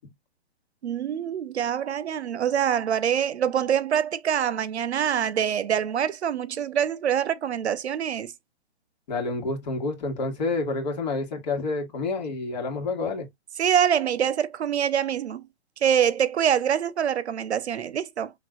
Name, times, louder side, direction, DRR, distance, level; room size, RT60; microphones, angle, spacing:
voice 1, 0.8-8.3 13.6-15.4 15.8-18.3, right 9 dB, 80° right, 0.7 m, -25 dB
voice 2, 9.1-13.3, left 3 dB, 40° left, 1.9 m, -28 dB
6.6 x 3.1 x 2.4 m
hypercardioid pair, 155°, 32 cm